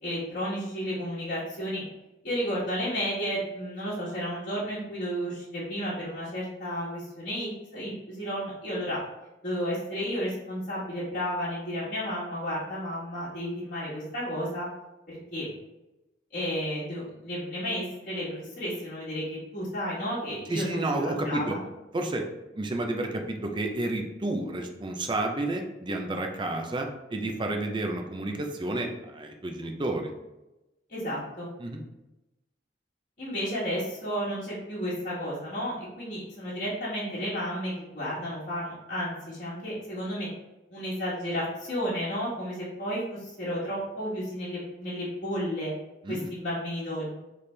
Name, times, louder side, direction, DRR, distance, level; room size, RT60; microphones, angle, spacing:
voice 1, 0.0-1.8 2.2-9.0 9.4-14.7 15.1-15.5 16.3-21.6 30.9-31.5 33.2-40.3 40.7-45.7 46.1-47.1, equal, 45° left, -10 dB, 1.4 m, -32 dB
voice 2, 20.5-21.6 21.9-22.2 22.5-30.1 31.6-31.8 46.0-46.3, right 2 dB, 25° right, 3 dB, 0.5 m, -31 dB
4.3 x 3.3 x 3.3 m, 0.98 s
head